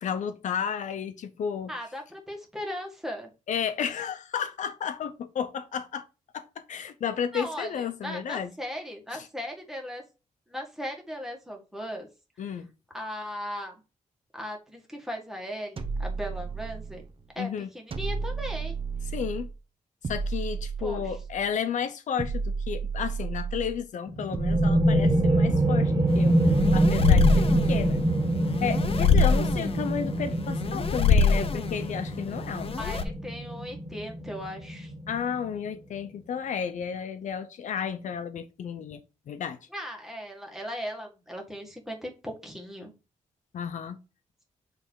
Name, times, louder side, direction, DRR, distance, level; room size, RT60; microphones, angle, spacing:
voice 1, 0.0-1.7 3.5-6.1 6.3-8.5 9.1-9.3 12.4-12.7 17.4-17.7 19.1-19.5 20.0-26.4 26.7-28.0 28.6-32.7 35.1-39.6 43.5-44.0, left 7 dB, 80° left, 0.7 m, -32 dB
voice 2, 1.7-3.3 7.3-10.0 10.5-12.1 12.5-12.6 12.9-13.7 14.3-17.0 17.4-18.8 20.8-21.2 32.8-34.9 39.7-42.9, equal, 5° right, 1.9 m, -37 dB
sound 1, 15.8-17.1 17.9-19.5 20.0-21.5 22.2-23.8 24.3-25.7 26.5-28.1, right 5 dB, 45° right, 0.9 m, -32 dB
sound 2, 24.1-35.5, right 1 dB, 25° right, 1.6 m, -25 dB
sound 3, 26.1-33.0, left 5 dB, 50° left, 0.8 m, -25 dB
7.7 x 3.3 x 4.6 m
wide cardioid pair, 125°, 13 cm